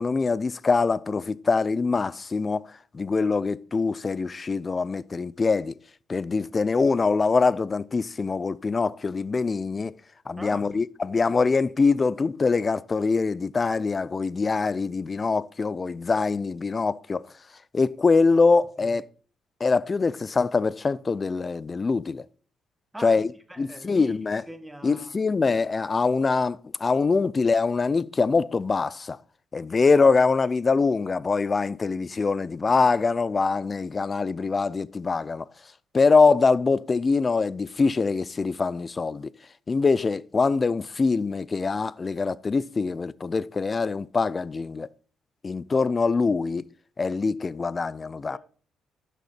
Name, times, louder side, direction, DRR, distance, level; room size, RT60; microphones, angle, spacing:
voice 1, 0.0-2.7 2.9-5.8 6.1-10.0 10.3-17.2 17.7-19.0 19.6-22.2 23.0-23.3 23.6-24.4 24.8-29.2 29.5-35.5 35.9-39.3 39.7-44.9 45.4-46.7 47.0-48.4, left 4 dB, 30° left, 0.5 m, -23 dB
voice 2, 10.4-10.7 18.8-19.0 22.9-23.2 23.5-24.2 24.5-25.1 48.3-48.4, right 1 dB, 10° right, 1.2 m, -41 dB
11.5 x 6.7 x 4.3 m
cardioid pair, 90°, 0 cm